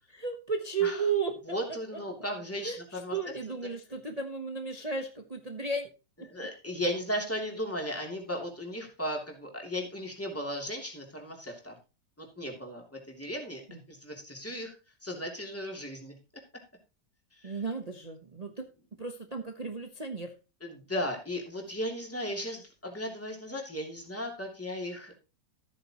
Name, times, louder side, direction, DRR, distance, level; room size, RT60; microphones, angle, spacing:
voice 1, 0.1-1.3 1.7-2.0 2.6-5.9 6.2-6.3 13.7-13.8 17.4-18.7 19.0-20.3, right 5 dB, 25° right, 4 dB, 1.0 m, -34 dB
voice 2, 1.5-3.2 6.3-11.7 12.2-13.6 13.9-14.7 15.0-16.1 17.4-17.5 20.6-25.1, equal, 5° left, 0 dB, 3.0 m, -36 dB
14.0 x 8.8 x 3.0 m, 0.31 s
omnidirectional pair, 1.9 m